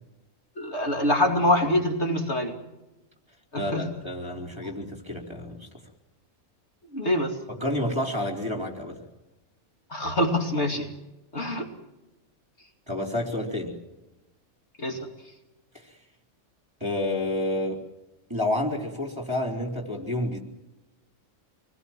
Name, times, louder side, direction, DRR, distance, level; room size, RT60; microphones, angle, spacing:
voice 1, 0.6-2.5 3.7-3.9 6.9-7.3 9.9-10.9 11.3-11.7 14.8-15.0, left 1 dB, 50° left, 3 dB, 2.8 m, -24 dB
voice 2, 3.6-5.7 7.5-9.0 12.9-13.8 15.7-16.0 16.8-17.8 18.3-20.4, left 1 dB, 20° right, 3 dB, 4.2 m, -29 dB
27.5 x 21.0 x 7.5 m, 1.0 s
omnidirectional pair, 1.5 m